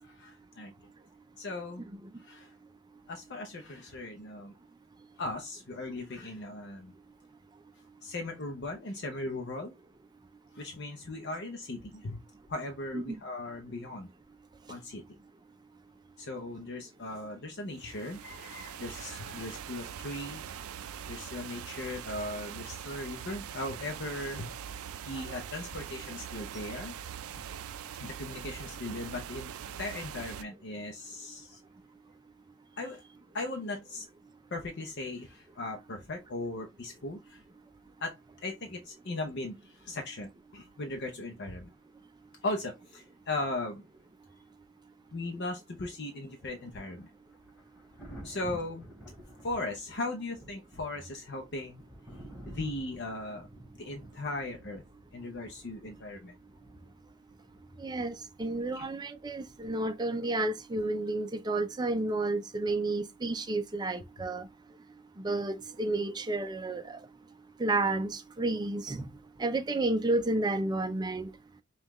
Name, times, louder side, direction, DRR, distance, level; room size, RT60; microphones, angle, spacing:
voice 1, 0.1-0.9 1.4-1.9 2.2-2.5 3.1-4.5 5.2-6.9 8.0-9.7 10.5-12.2 12.5-14.1 14.7-15.0 16.2-20.4 21.1-24.5 25.0-26.9 27.3-27.4 28.0-29.5 29.8-31.6 32.8-33.0 33.3-34.1 34.5-37.4 38.0-41.7 42.4-43.9 45.1-47.1 48.2-48.9 49.4-51.8 52.1-53.5 53.7-54.8 55.1-56.3 58.7-58.8 64.2-64.3, left 2 dB, 50° left, 0.6 m, -38 dB
sound 1, 17.7-30.4, right 9 dB, 80° right, 0.4 m, -43 dB
Thunder, 46.5-60.2 61.8-62.0, right 1 dB, 10° left, 2.8 m, -52 dB
voice 2, 57.8-64.5 65.2-67.0 67.6-69.1 69.4-71.3, right 2 dB, 20° right, 0.4 m, -31 dB
5.4 x 2.4 x 3.0 m
head